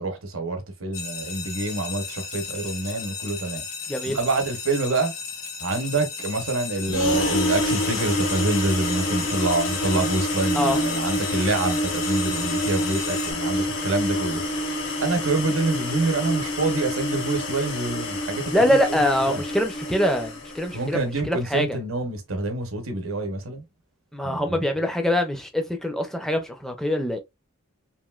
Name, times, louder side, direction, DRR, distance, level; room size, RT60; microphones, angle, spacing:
voice 1, 0.0-3.6 4.1-5.1 5.6-19.4 20.7-23.6 24.2-24.6, right 2 dB, 70° right, 0.9 m, -27 dB
sound 1, 0.9-13.3, left 5 dB, 80° left, 1.2 m, -35 dB
sound 2, 6.9-20.8, left 1 dB, 60° left, 1.0 m, -27 dB
voice 2, 18.5-21.0 21.3-21.7 24.1-27.2, equal, ahead, 0.5 m, -23 dB
3.0 x 2.6 x 2.3 m
head